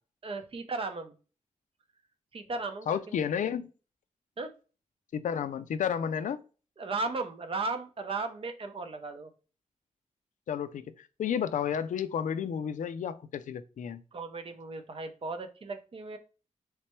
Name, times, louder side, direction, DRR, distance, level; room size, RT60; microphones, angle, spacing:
voice 1, 0.2-1.1 2.3-3.5 4.4-4.5 6.8-9.3 14.1-16.2, right 3 dB, 45° right, 0.6 m, -36 dB
voice 2, 2.9-3.7 5.1-6.4 10.5-14.0, left 8 dB, 85° left, 0.4 m, -32 dB
3.3 x 3.2 x 3.0 m
wide cardioid pair, 110°, 13 cm